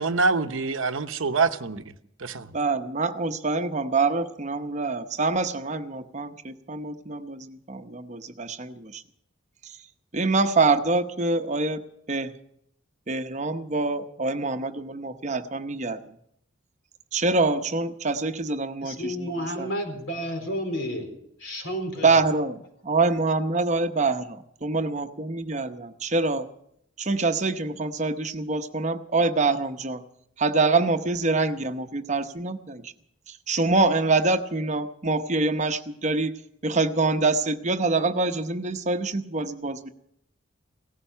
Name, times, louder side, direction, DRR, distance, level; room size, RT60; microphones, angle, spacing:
voice 1, 0.0-1.8 2.2-2.5, right 4 dB, 75° right, 0.9 m, -25 dB
voice 2, 2.5-9.0 9.6-9.8 10.1-12.3 13.1-16.1 17.1-19.7 22.0-22.6 22.8-24.4 24.6-26.5 27.0-30.0 30.4-32.9 33.3-36.3 36.6-39.9, right 3 dB, 35° right, 0.8 m, -25 dB
voice 3, 18.8-21.1 21.4-22.2, equal, 70° left, 4.4 m, -31 dB
17.5 x 14.5 x 5.6 m
head